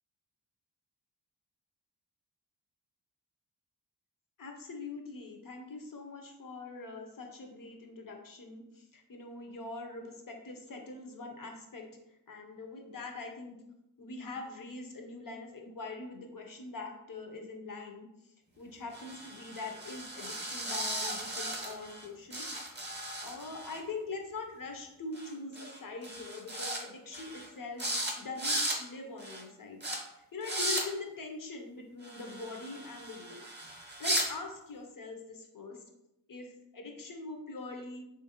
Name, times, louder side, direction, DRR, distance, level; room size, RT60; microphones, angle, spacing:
voice 1, 4.4-11.9 12.3-13.6 14.0-18.1 18.6-22.4 23.2-27.8 28.2-29.8 30.3-33.4 34.0-35.8 36.3-38.0, left 3 dB, 50° left, 3 dB, 0.6 m, -43 dB
sound 1, 18.9-22.0 22.3-23.8 25.1-25.3 25.5-25.8 26.0-26.8 27.1-27.5 27.8-28.1 28.4-28.8 29.2-29.4 29.8-30.0 30.4-30.8 32.0-34.3, right 1 dB, 25° right, 0.7 m, -36 dB
3.2 x 2.5 x 2.8 m, 0.85 s
wide cardioid pair, 90°, 43 cm